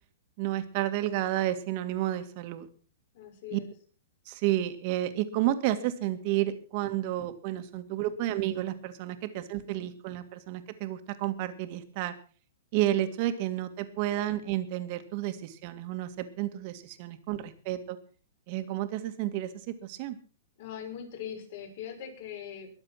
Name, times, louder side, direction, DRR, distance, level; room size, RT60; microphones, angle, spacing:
voice 1, 0.4-2.7 3.5-3.6 4.3-12.1 12.7-18.0 18.5-20.2, right 13 dB, 40° right, 9 dB, 2.0 m, -31 dB
voice 2, 3.1-3.7 20.6-22.7, left 9 dB, 50° left, 3 dB, 5.9 m, -41 dB
22.0 x 7.5 x 5.9 m, 0.40 s
hypercardioid pair, 155°, 0 cm